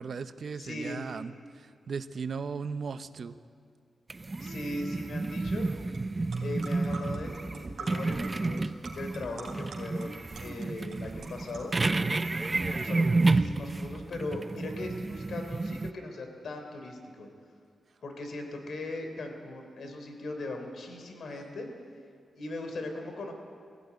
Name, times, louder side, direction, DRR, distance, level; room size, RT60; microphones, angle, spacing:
voice 1, 0.0-1.3 1.9-3.3, right 5 dB, 55° right, 11 dB, 0.8 m, -36 dB
voice 2, 0.5-1.1 4.4-5.7 6.4-11.7 12.5-17.3 18.0-21.7 22.3-23.3, left 2 dB, 70° left, 4 dB, 3.4 m, -39 dB
sound 1, 4.1-15.9, right 3 dB, 25° right, 0.6 m, -30 dB
sound 2, 5.9-6.0 6.3-12.8, right 3 dB, 75° right, 3.5 m, -46 dB
19.5 x 16.0 x 9.5 m, 2.2 s
wide cardioid pair, 125°, 0 cm